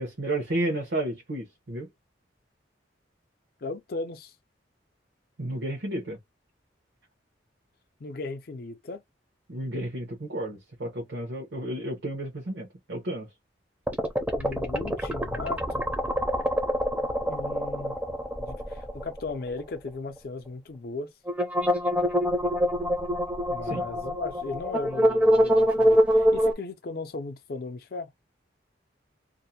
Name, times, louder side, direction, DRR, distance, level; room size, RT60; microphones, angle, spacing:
voice 1, 0.0-1.9 5.4-6.2 9.5-13.3 23.6-23.9, right 1 dB, 75° right, 0.8 m, -32 dB
voice 2, 3.6-4.3 8.0-9.0 14.4-15.8 17.3-18.0 18.4-21.1 23.5-28.1, left 3 dB, 55° left, 0.5 m, -36 dB
sound 1, 13.9-19.6 19.9-20.0 21.3-26.5, equal, 10° right, 0.5 m, -25 dB
2.5 x 2.1 x 2.7 m
head